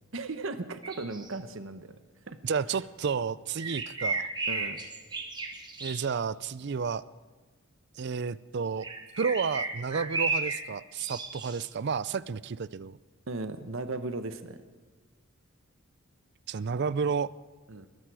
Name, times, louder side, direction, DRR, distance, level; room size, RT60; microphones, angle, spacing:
voice 1, 0.1-2.0 2.3-2.4 4.5-4.8 13.3-14.6 17.7-17.9, right 3 dB, 70° right, 10 dB, 1.0 m, -36 dB
sound 1, 0.8-1.4 3.6-6.0 8.8-10.6 11.0-11.6, right 3 dB, 20° right, 1.6 m, -33 dB
voice 2, 2.4-4.3 5.8-7.0 8.0-8.9 9.2-13.0 16.5-17.3, right 5 dB, 55° right, 19 dB, 0.5 m, -31 dB
21.0 x 13.5 x 4.9 m, 1.4 s
head